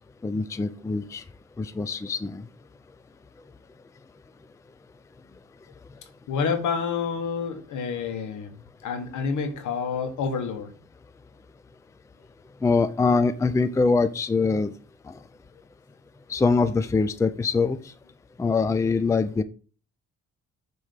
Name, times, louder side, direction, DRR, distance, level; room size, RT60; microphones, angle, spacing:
voice 1, 0.2-1.2 1.6-2.4 12.6-14.7 15.1-15.2 16.3-17.9 18.4-19.4, left 4 dB, 10° left, 0.4 m, -23 dB
voice 2, 6.3-8.6 8.8-10.7, left 5 dB, 75° left, 1.3 m, -28 dB
6.4 x 3.1 x 5.1 m
cardioid pair, 90°, 30 cm